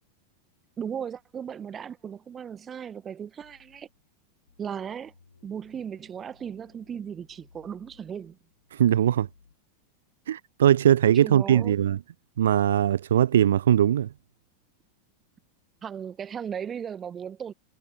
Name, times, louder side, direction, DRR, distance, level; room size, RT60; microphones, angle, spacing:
voice 1, 0.8-3.9 4.6-5.1 5.4-8.4 11.0-11.7 15.8-17.5, right 8 dB, 25° right, 1.2 m, -36 dB
sound 1, 3.4-4.0 4.5-9.6, left 4 dB, 80° left, 4.7 m, -60 dB
voice 2, 8.7-9.3 10.3-12.0 12.4-14.1, right 10 dB, 60° right, 0.3 m, -20 dB
figure-of-eight pair, 90°, 0 cm